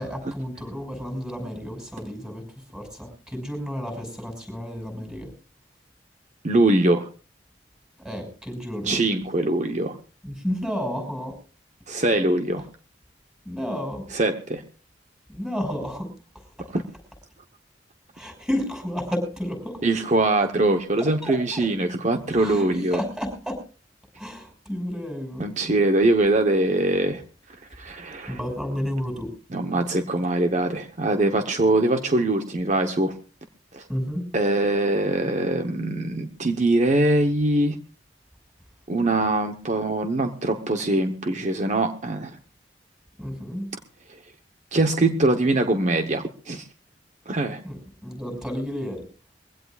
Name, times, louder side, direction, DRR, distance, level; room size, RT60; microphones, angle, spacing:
voice 1, 0.0-5.3 8.0-9.0 10.2-11.4 13.4-14.0 15.3-16.1 18.1-19.8 21.0-21.6 22.3-23.6 24.2-25.5 28.3-29.3 33.9-34.2 43.2-43.7 47.6-49.0, equal, 5° right, 4 dB, 6.2 m, -31 dB
voice 2, 6.4-7.1 8.8-10.0 11.9-12.7 14.1-14.6 16.7-16.8 19.8-23.0 25.4-27.2 27.7-28.4 29.5-33.1 33.7-33.9 34.3-37.8 38.9-42.3 44.7-46.7 47.3-47.6, right 2 dB, 45° right, 5 dB, 1.1 m, -22 dB
23.0 x 16.5 x 2.5 m, 0.36 s
head